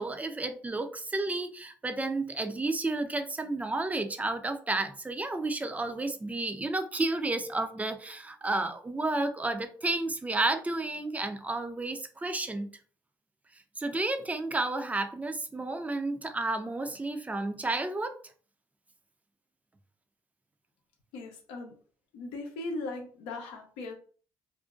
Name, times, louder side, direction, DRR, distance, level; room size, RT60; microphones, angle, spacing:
voice 1, 0.0-12.7 13.8-18.2, right 2 dB, 15° right, 7 dB, 0.5 m, -31 dB
voice 2, 21.1-21.8 22.1-23.9, left 2 dB, 80° left, 2 dB, 0.6 m, -38 dB
2.5 x 2.1 x 2.4 m, 0.42 s
hypercardioid pair, 55°, 9 cm